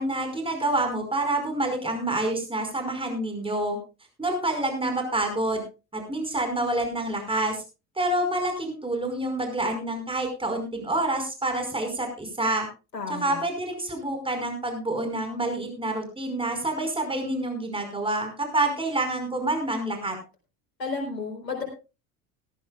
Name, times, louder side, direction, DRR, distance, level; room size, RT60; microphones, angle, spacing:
voice 1, 0.0-3.8 4.2-5.6 5.9-7.6 8.0-12.7 13.1-20.2, right 2 dB, 10° right, 5 dB, 5.1 m, -27 dB
voice 2, 12.9-13.4 20.8-21.6, left 4 dB, 80° left, 1 dB, 4.4 m, -32 dB
18.0 x 14.0 x 2.4 m, 0.30 s
figure-of-eight pair, 70°, 48 cm